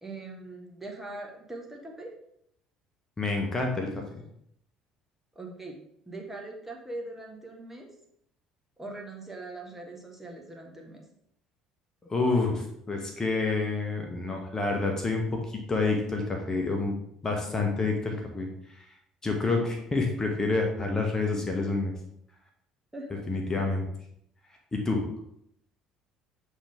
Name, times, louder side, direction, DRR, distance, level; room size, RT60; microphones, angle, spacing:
voice 1, 0.0-2.1 5.3-5.7 6.1-7.9 8.8-11.0 22.9-23.2, right 2 dB, 10° right, 0 dB, 1.4 m, -41 dB
voice 2, 3.2-4.0 12.1-16.9 17.2-18.5 18.7-18.8 19.2-21.9 23.3-23.9 24.7-25.0, left 3 dB, 25° left, 2 dB, 1.2 m, -28 dB
7.1 x 3.7 x 3.5 m, 0.72 s
figure-of-eight pair, 55°, 2 cm